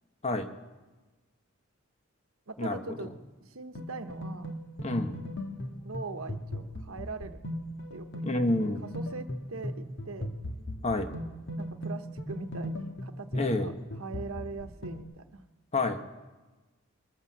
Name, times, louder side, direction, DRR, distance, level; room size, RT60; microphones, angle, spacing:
voice 1, 2.5-3.1 3.4-4.5 5.8-7.4 7.9-8.6 8.9-10.3 11.6-13.7 14.0-15.4, right 3 dB, 75° right, 8 dB, 1.0 m, -41 dB
sound 1, 3.7-15.0, equal, 60° left, 1.8 m, -38 dB
voice 2, 4.8-5.2 8.2-8.9 10.8-11.1 13.3-13.7 15.7-16.0, left 2 dB, 30° left, 7 dB, 1.1 m, -28 dB
22.5 x 8.3 x 7.4 m, 1.2 s
head